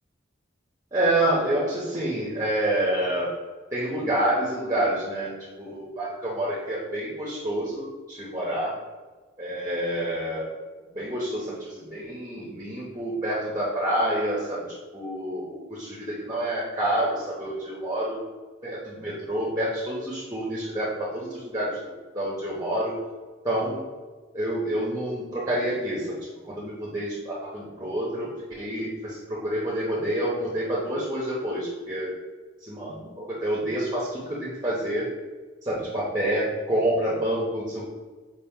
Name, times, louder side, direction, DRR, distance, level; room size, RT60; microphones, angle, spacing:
voice 1, 0.9-3.3 3.7-8.7 9.4-10.5 10.9-18.2 18.6-22.9 23.4-23.8 24.3-26.2 26.4-28.3 28.6-32.1 32.6-35.1 35.6-37.9, right 1 dB, 20° right, -5 dB, 0.7 m, -28 dB
5.0 x 2.9 x 3.6 m, 1.3 s
head